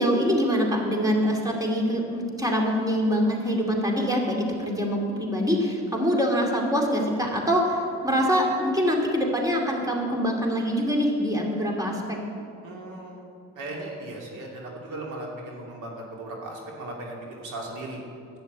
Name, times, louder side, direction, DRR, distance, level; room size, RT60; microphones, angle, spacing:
voice 1, 0.0-12.2, equal, 10° right, 0 dB, 2.6 m, -24 dB
voice 2, 12.6-13.3 13.6-18.0, right 2 dB, 85° right, -1 dB, 2.8 m, -37 dB
11.0 x 9.2 x 8.1 m, 2.6 s
cardioid pair, 90°, 30 cm